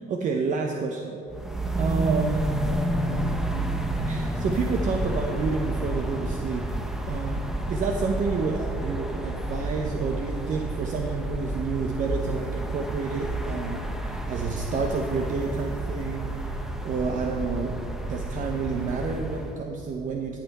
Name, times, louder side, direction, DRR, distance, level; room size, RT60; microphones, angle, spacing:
voice 1, 0.0-1.2 1.8-2.6 4.1-6.8 7.1-20.4, right 4 dB, 50° right, 3 dB, 0.7 m, -29 dB
sound 1, 1.3-19.6, right 1 dB, 5° right, 0.7 m, -30 dB
16.0 x 5.8 x 4.2 m, 2.9 s
cardioid pair, 110°, 17 cm